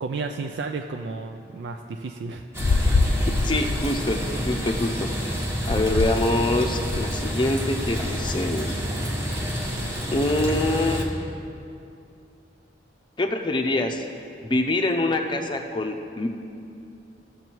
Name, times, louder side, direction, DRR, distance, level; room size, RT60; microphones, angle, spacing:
voice 1, 0.0-2.5, right 4 dB, 70° right, 4 dB, 0.4 m, -32 dB
sound 1, 2.5-11.1, equal, 15° right, 1.1 m, -29 dB
sound 2, 2.6-4.8 5.6-6.3 6.6-7.2 7.7-8.3, left 3 dB, 80° left, 0.5 m, -25 dB
voice 2, 3.4-4.2 4.5-8.8 10.1-11.1 13.2-14.1 14.4-16.3, left 2 dB, 25° left, 4 dB, 0.6 m, -25 dB
15.0 x 6.7 x 4.5 m, 2.6 s
head